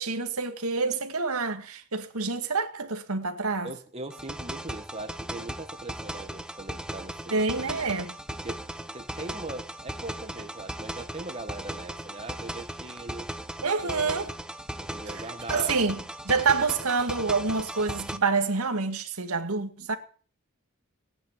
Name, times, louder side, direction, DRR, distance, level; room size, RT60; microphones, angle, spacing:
voice 1, 0.0-3.7 7.3-8.1 13.6-14.3 15.5-16.0 16.2-20.0, right 4 dB, 85° right, 2.0 m, -27 dB
voice 2, 3.6-7.8 8.3-8.6 8.9-13.3 13.8-14.3 14.8-15.9, right 2 dB, 30° right, 1.6 m, -40 dB
sound 1, 4.1-18.2, right 1 dB, 5° right, 0.8 m, -37 dB
18.5 x 10.0 x 7.5 m
head